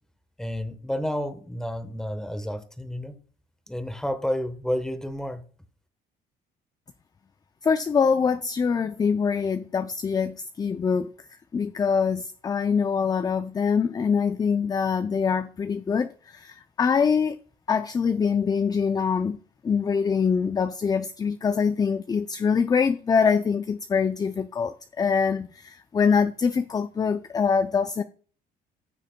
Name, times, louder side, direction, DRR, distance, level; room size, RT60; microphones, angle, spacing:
voice 1, 0.4-3.1 3.7-5.4, equal, 5° left, 1.1 m, -30 dB
voice 2, 7.6-11.1 11.5-17.4 17.7-19.4 19.6-28.0, left 6 dB, 25° left, 0.4 m, -24 dB
14.5 x 6.5 x 2.2 m
cardioid pair, 110°, 17 cm